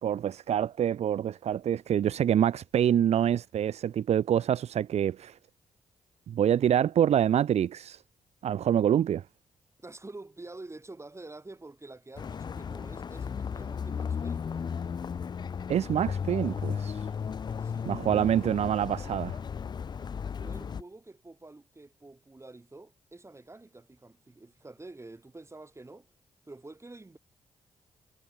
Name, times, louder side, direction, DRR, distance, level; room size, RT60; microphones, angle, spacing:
voice 1, 0.0-5.4 6.3-8.0 8.4-9.2 15.7-17.1 17.9-19.4, right 10 dB, 65° right, 0.7 m, -26 dB
voice 2, 9.8-14.5 17.6-18.3 20.4-26.1 26.4-27.2, right 2 dB, 25° right, 4.7 m, -48 dB
sound 1, 12.2-20.8, left 6 dB, 35° left, 0.4 m, -35 dB
supercardioid pair, 50°, 12 cm